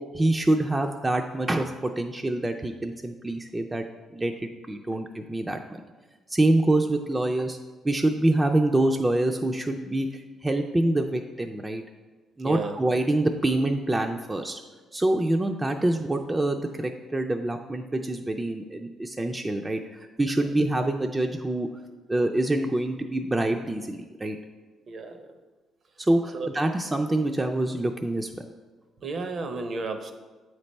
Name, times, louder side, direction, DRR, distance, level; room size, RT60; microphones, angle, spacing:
voice 1, 0.1-3.8 4.1-5.8 6.3-7.6 7.8-11.8 12.4-14.6 14.9-19.8 20.2-21.7 22.1-24.4 26.0-28.3, right 1 dB, 20° right, 4 dB, 0.4 m, -26 dB
voice 2, 12.4-12.8 24.9-25.2 26.3-26.5 29.0-30.1, right 3 dB, 50° right, 7 dB, 0.6 m, -32 dB
7.9 x 3.3 x 4.1 m, 1.3 s
cardioid pair, 90°, 0 cm